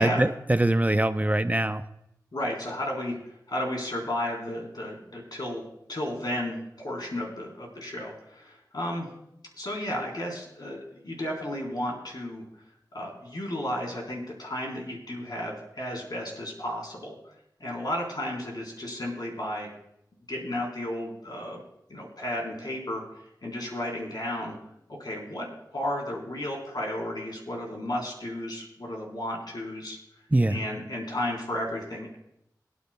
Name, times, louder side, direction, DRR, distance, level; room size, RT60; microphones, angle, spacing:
voice 1, 0.0-1.8 30.3-30.6, right 1 dB, 20° right, 10 dB, 0.5 m, -23 dB
voice 2, 2.3-3.2 3.5-9.1 9.6-12.4 12.9-17.1 17.6-19.7 20.3-21.6 21.9-23.0 23.4-24.6 24.9-30.0 30.5-32.2, left 1 dB, 65° left, -1 dB, 3.7 m, -33 dB
23.0 x 9.5 x 2.2 m, 0.79 s
cardioid pair, 45°, 8 cm